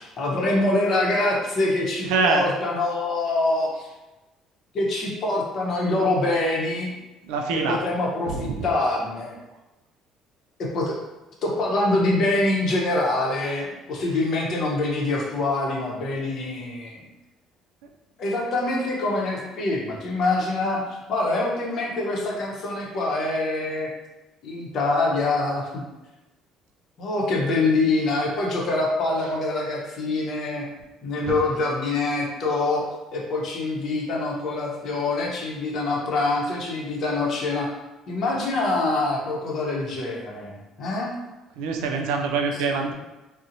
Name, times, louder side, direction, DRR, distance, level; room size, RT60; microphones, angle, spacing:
voice 1, 0.0-3.9 4.7-6.9 7.7-9.3 10.6-11.0 11.4-16.9 18.2-23.9 24.4-25.8 27.0-30.7 31.0-32.9 33.1-37.7 38.1-41.1, left 2 dB, 60° left, -2 dB, 0.7 m, -25 dB
voice 2, 2.1-2.4 7.2-7.8 8.3-8.7 31.2-31.3 41.6-42.9, right 4 dB, 90° right, 3 dB, 0.3 m, -24 dB
2.7 x 2.0 x 2.6 m, 1.0 s
cardioid pair, 95°, 0 cm